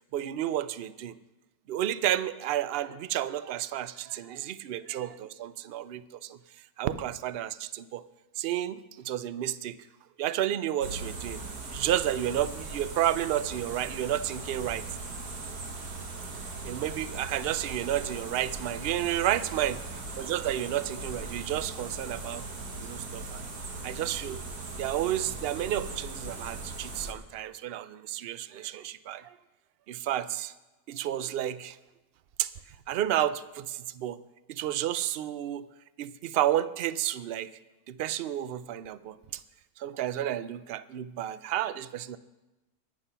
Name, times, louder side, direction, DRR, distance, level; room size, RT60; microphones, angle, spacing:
voice 1, 0.1-1.1 1.7-6.4 6.8-8.0 8.4-9.8 10.2-11.4 11.7-14.8 16.6-19.8 20.2-22.4 22.8-23.4 23.8-24.4 24.8-29.3 29.9-30.5 30.9-31.8 32.4-32.5 32.9-34.2 34.5-35.7 36.0-37.5 37.9-39.4 39.8-42.2, right 12 dB, 70° right, 15 dB, 0.5 m, -31 dB
sound 1, 10.8-27.1, right 3 dB, 90° right, 2.0 m, -39 dB
20.5 x 7.4 x 5.6 m, 1.1 s
omnidirectional pair, 1.5 m